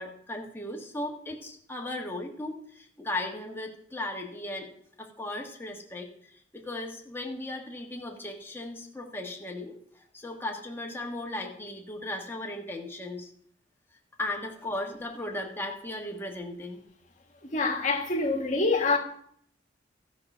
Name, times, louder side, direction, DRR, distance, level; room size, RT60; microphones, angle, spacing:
voice 1, 0.0-4.7 5.0-13.3 14.2-16.8, left 1 dB, 15° left, 1.6 m, -36 dB
voice 2, 17.5-19.0, left 3 dB, 45° left, 1.5 m, -25 dB
14.0 x 5.8 x 6.0 m
head